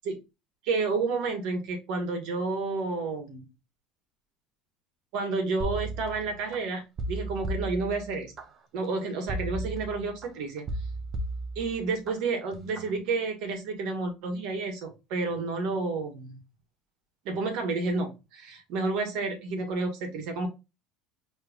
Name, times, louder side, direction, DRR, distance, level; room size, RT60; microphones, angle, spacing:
voice 1, 0.6-3.4 5.1-6.8 7.1-8.3 8.7-10.7 11.5-16.4 17.2-20.5, right 3 dB, 70° right, 4 dB, 1.6 m, -30 dB
sound 1, 5.6-6.6 7.0-8.4 9.3-10.3 10.7-12.1 12.5-12.9, right 2 dB, 40° right, 0.9 m, -35 dB
5.5 x 3.1 x 2.5 m, 0.26 s
supercardioid pair, 95°, 0 cm